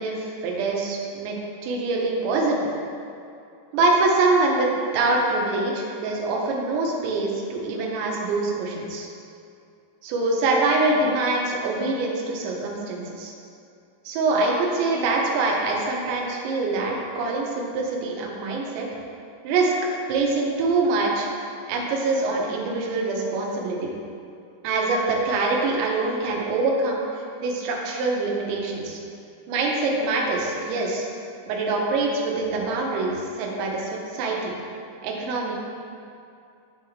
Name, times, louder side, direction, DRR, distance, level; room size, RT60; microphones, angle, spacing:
voice 1, 0.0-1.4 1.6-2.7 3.7-4.7 4.9-9.1 10.0-13.3 14.1-18.9 19.4-19.7 20.1-21.3 21.7-23.8 24.6-29.0 29.5-31.1 31.5-34.5 35.0-35.5, right 3 dB, 80° right, -1 dB, 3.0 m, -24 dB
10.5 x 3.6 x 3.1 m, 2.5 s
omnidirectional pair, 5.3 m